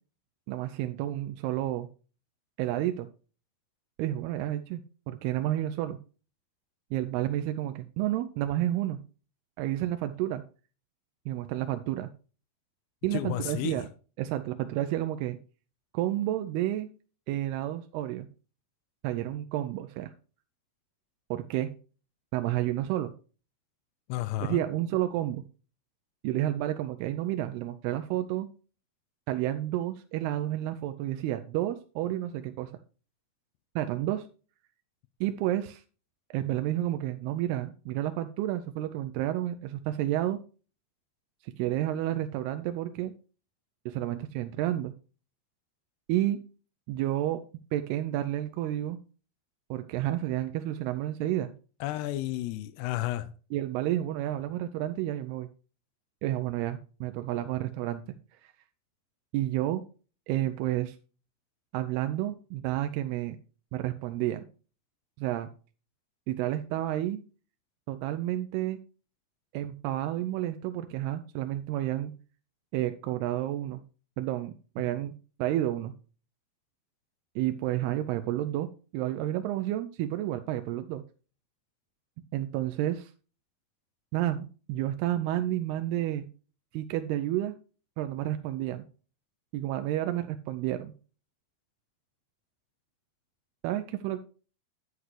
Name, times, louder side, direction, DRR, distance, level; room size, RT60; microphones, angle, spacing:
voice 1, 0.5-1.9 2.6-3.1 4.0-4.8 5.1-6.0 6.9-9.0 9.6-10.4 11.3-12.1 13.0-13.9 14.2-15.4 15.9-16.9 17.3-18.3 19.0-20.1 21.3-21.7 22.3-23.1 24.4-25.4 26.2-28.5 29.3-32.7 33.8-34.3 35.2-35.8 36.3-40.4 41.4-43.1 43.9-44.9 46.1-46.4 46.9-47.4 47.7-49.0 49.7-51.5 53.5-55.5 56.2-58.1 58.4-58.5 59.3-59.8 60.3-61.0 61.7-63.4 63.7-64.5 65.2-65.5 66.3-67.2 67.9-68.8 69.5-72.1 72.7-73.8 74.2-75.1 75.4-75.9 77.4-78.7 78.9-81.0 82.3-83.1 84.1-86.3 86.7-87.6 88.0-88.9 89.5-90.9 93.6-94.2, right 13 dB, 85° right, 8 dB, 2.6 m, -30 dB
voice 2, 13.1-13.8 24.1-24.6 51.8-53.3, left 15 dB, 85° left, 13 dB, 2.7 m, -32 dB
9.5 x 8.0 x 3.2 m, 0.36 s
omnidirectional pair, 4.6 m